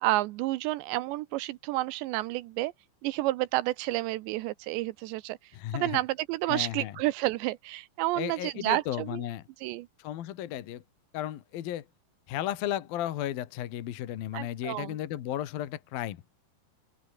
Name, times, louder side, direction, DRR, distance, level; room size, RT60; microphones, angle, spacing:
voice 1, 0.0-2.7 3.0-5.4 5.7-9.2 9.6-9.9 14.3-15.0, right 18 dB, 80° right, 2.9 m, -30 dB
voice 2, 5.5-6.0 6.5-7.0 8.2-9.4 10.0-10.8 11.1-11.9 12.3-16.2, left 12 dB, 60° left, 3.0 m, -34 dB
open air
omnidirectional pair, 5.2 m